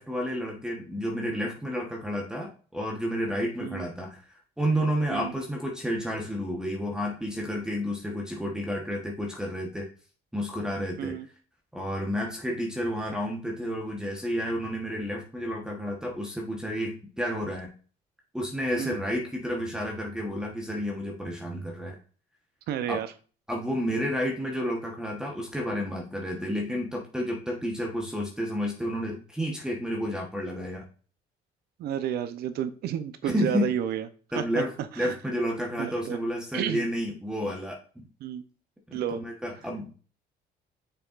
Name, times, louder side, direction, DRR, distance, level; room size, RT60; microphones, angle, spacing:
voice 1, 0.0-9.9 10.3-11.1 11.7-17.7 18.3-21.9 22.9-23.0 23.5-30.9 33.2-33.7 34.3-38.1 38.9-39.9, equal, 5° right, -1 dB, 1.1 m, -31 dB
voice 2, 22.7-23.1 31.8-34.1 34.4-34.6 34.9-35.2 35.8-36.2 36.5-36.9 38.2-38.4 38.9-39.2, right 9 dB, 70° right, 11 dB, 0.7 m, -31 dB
6.9 x 5.7 x 2.5 m, 0.39 s
cardioid pair, 110°, 17 cm